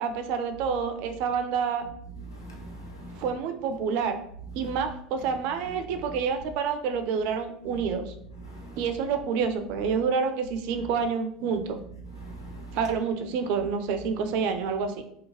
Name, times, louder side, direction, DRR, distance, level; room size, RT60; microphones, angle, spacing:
voice 1, 0.0-1.8 3.2-4.2 4.5-8.1 8.8-11.8 12.7-15.0, right 6 dB, 60° right, 0.4 m, -28 dB
voice 2, 2.3-3.3 4.6-4.7 8.4-8.8 12.1-12.8, right 1 dB, 90° left, 0.6 m, -42 dB
2.8 x 2.1 x 2.9 m
hypercardioid pair, 75°, 2 cm